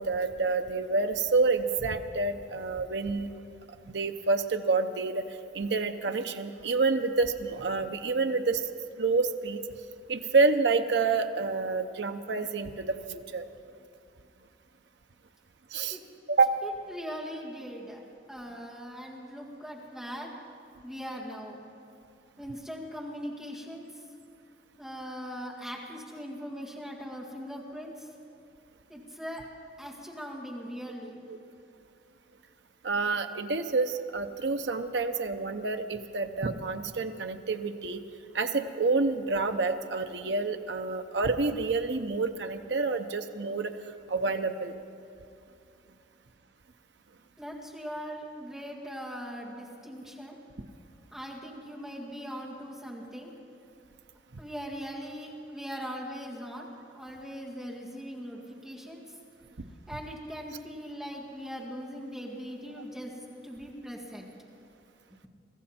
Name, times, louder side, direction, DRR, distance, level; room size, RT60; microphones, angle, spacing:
voice 1, 0.0-3.3 3.9-5.2 5.5-8.6 9.0-9.6 10.1-13.4 15.7-16.0 16.3-16.6 31.3-31.4 32.8-38.0 38.3-43.7 44.1-44.7, right 3 dB, 65° right, 7 dB, 0.7 m, -28 dB
voice 2, 16.6-18.0 18.3-20.3 20.8-21.6 22.4-24.0 24.8-28.1 28.9-29.4 29.8-31.2 47.4-50.4 51.1-53.3 54.4-56.7 56.9-59.0 59.9-63.1 63.4-64.3, equal, ahead, -4 dB, 2.0 m, -40 dB
24.0 x 14.0 x 4.3 m, 2.5 s
head